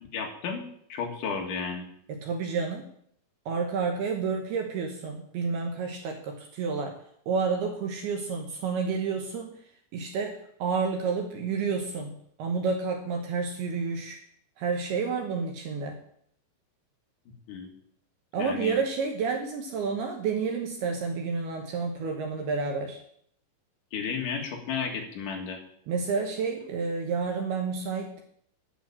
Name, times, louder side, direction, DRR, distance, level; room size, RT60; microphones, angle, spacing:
voice 1, 0.1-1.8 17.5-17.7 18.4-18.8 23.9-25.6, left 5 dB, 60° left, 1 dB, 2.3 m, -33 dB
voice 2, 2.1-2.9 3.5-7.0 7.3-9.5 9.9-14.2 14.6-16.0 18.3-23.0 25.9-28.2, right 5 dB, 75° right, 3 dB, 2.5 m, -30 dB
11.5 x 5.9 x 8.7 m, 0.67 s
omnidirectional pair, 5.8 m